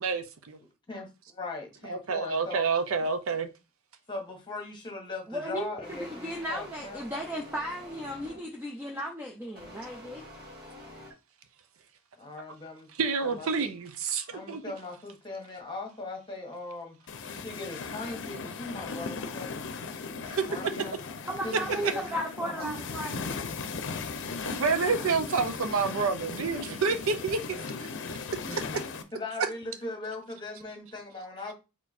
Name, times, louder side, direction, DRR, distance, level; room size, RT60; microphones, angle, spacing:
voice 1, 0.0-0.6 1.9-3.5 13.0-14.6 20.3-20.5 21.8-21.9 22.6-22.7 24.4-27.4, right 5 dB, 70° right, 0.6 m, -28 dB
voice 2, 0.9-2.7 4.1-7.0 12.1-12.9 13.2-13.7 14.3-19.5 20.5-21.0 21.4-22.7 27.5-27.7 28.0-28.8 29.1-31.5, left 3 dB, 20° left, 1.4 m, -40 dB
voice 3, 5.3-10.2 21.3-23.4, equal, 10° right, 0.6 m, -35 dB
sound 1, 5.8-8.6 9.5-11.1, left 1 dB, 45° right, 1.9 m, -47 dB
sound 2, 17.1-29.0, left 4 dB, 60° left, 0.6 m, -37 dB
4.3 x 2.8 x 4.3 m
head